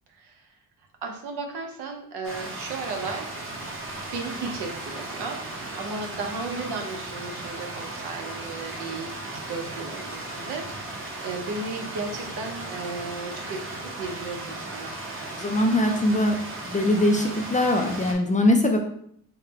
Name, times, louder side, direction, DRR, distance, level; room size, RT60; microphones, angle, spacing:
voice 1, 0.1-0.6 1.0-3.3 4.1-5.4 5.8-14.9, right 3 dB, 85° right, 3 dB, 0.9 m, -35 dB
Stream, 2.2-18.1, right 2 dB, 35° right, 0.8 m, -36 dB
voice 2, 15.4-16.4 16.7-18.8, left 1 dB, 20° left, 3 dB, 0.3 m, -21 dB
4.0 x 2.1 x 4.0 m, 0.66 s
cardioid pair, 130°, 39 cm